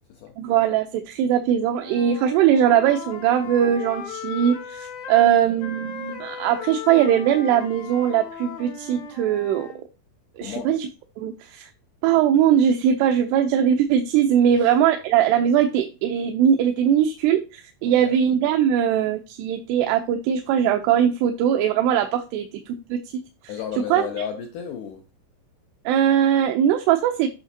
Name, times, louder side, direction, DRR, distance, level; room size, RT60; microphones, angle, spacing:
voice 1, 0.4-9.7 10.4-10.9 11.2-11.7 12.0-23.5 23.9-24.0 25.9-27.3, right 9 dB, 90° right, 2.7 m, -20 dB
Wind instrument woodwind instrument, 1.7-5.3 5.6-9.8, left 6 dB, 60° left, 2.4 m, -37 dB
voice 2, 17.9-18.2 23.5-25.0, left 8 dB, 80° left, 1.9 m, -34 dB
8.2 x 5.8 x 2.7 m
omnidirectional pair, 4.7 m